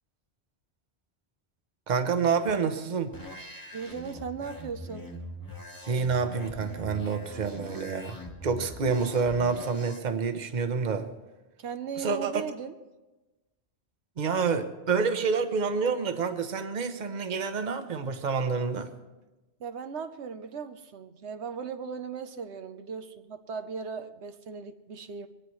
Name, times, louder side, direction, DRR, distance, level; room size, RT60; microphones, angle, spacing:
voice 1, 1.9-3.2 5.9-11.1 12.0-12.3 14.2-18.9, right 5 dB, 45° right, 8 dB, 1.0 m, -28 dB
sound 1, 3.1-10.0, left 1 dB, 20° left, 1.6 m, -42 dB
voice 2, 3.7-5.1 11.6-12.7 19.6-25.3, right 6 dB, 85° right, 8 dB, 1.1 m, -37 dB
23.0 x 18.0 x 3.1 m, 1.1 s
omnidirectional pair, 1.1 m